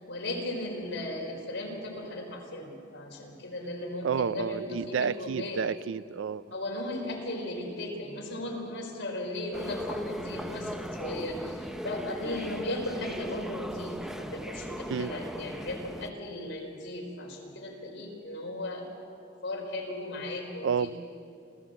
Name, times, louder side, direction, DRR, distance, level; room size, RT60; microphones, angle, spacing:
voice 1, 0.1-5.7 6.5-18.9 19.4-20.9, left 1 dB, 60° left, 4.7 m, -36 dB
voice 2, 4.0-6.4 14.9-15.1 20.6-20.9, right 6 dB, 70° right, 0.4 m, -30 dB
sound 1, 9.5-16.1, equal, ahead, 0.7 m, -38 dB
27.5 x 14.5 x 7.6 m
head